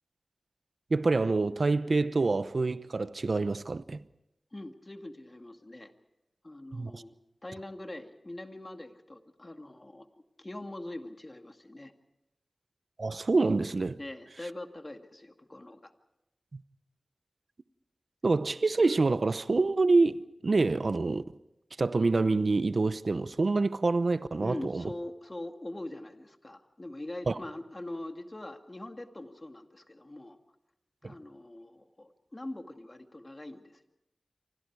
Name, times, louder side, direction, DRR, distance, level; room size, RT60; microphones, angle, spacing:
voice 1, 0.9-4.0 6.7-7.0 13.0-14.0 16.5-16.6 18.2-20.2 20.4-21.2 21.8-24.8 27.3-27.4 31.0-31.1, right 3 dB, 60° right, 0.8 m, -26 dB
voice 2, 4.5-5.9 6.4-7.1 7.4-10.1 10.4-11.9 14.0-15.9 24.4-30.4 31.0-33.9, left 1 dB, 30° left, 2.1 m, -43 dB
28.0 x 25.5 x 4.8 m
wide cardioid pair, 60°, 0 cm